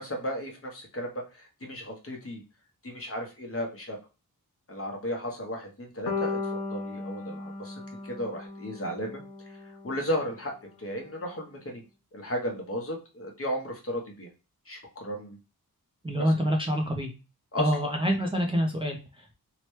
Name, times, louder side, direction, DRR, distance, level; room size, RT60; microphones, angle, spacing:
voice 1, 0.0-2.4 2.8-4.0 4.7-6.4 6.7-9.2 9.5-11.8 12.1-14.3 14.7-15.4 16.1-16.3 17.5-17.7, equal, 35° left, 1 dB, 0.9 m, -34 dB
sound 1, 6.1-10.2, left 3 dB, 75° left, 0.7 m, -36 dB
voice 2, 16.0-17.1 17.6-19.3, equal, 15° right, 0 dB, 0.4 m, -27 dB
2.9 x 2.1 x 3.1 m, 0.30 s
wide cardioid pair, 90°, 39 cm